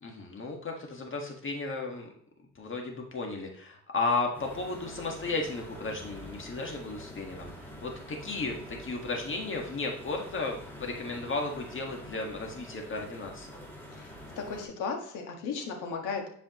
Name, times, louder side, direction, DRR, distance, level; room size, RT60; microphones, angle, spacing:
voice 1, 0.0-2.1 2.5-13.5, left 3 dB, 40° left, 1 dB, 1.6 m, -34 dB
sound 1, 4.3-14.7, equal, 5° left, 2.7 m, -46 dB
voice 2, 13.9-16.3, left 5 dB, 90° left, 2 dB, 1.6 m, -36 dB
10.0 x 5.0 x 3.0 m, 0.66 s
cardioid pair, 90°, 30 cm